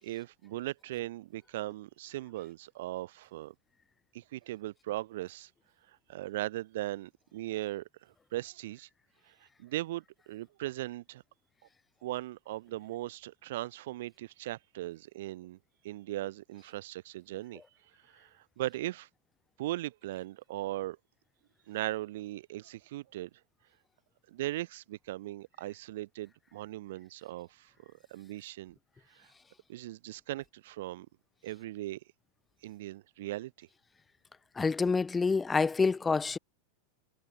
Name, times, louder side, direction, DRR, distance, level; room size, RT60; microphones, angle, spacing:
voice 1, 0.0-3.5 4.1-5.5 6.1-8.9 9.3-9.4 9.6-11.2 12.0-15.6 15.8-17.6 18.1-19.1 19.6-21.0 21.7-23.3 24.3-28.8 29.1-29.3 29.7-31.1 31.4-32.0 32.6-33.7, right 16 dB, 70° right, 6.8 m, -38 dB
voice 2, 34.6-36.4, left 4 dB, 15° left, 2.0 m, -27 dB
hypercardioid pair, 120°, 0 cm